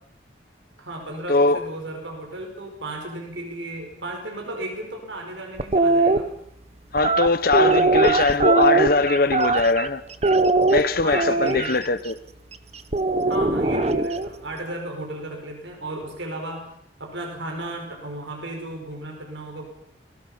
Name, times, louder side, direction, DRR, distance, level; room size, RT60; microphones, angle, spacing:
voice 1, 0.8-6.3 10.9-11.8 13.3-16.7 17.0-19.7, right 1 dB, 85° right, 5.3 m, -34 dB
voice 2, 1.3-1.7 6.9-10.0 10.7-12.2, left 3 dB, 50° left, 1.0 m, -21 dB
sound 1, 5.6-6.2 7.0-9.9 10.2-11.7 12.9-14.3, right 3 dB, 35° right, 1.1 m, -20 dB
30.0 x 22.0 x 5.8 m
head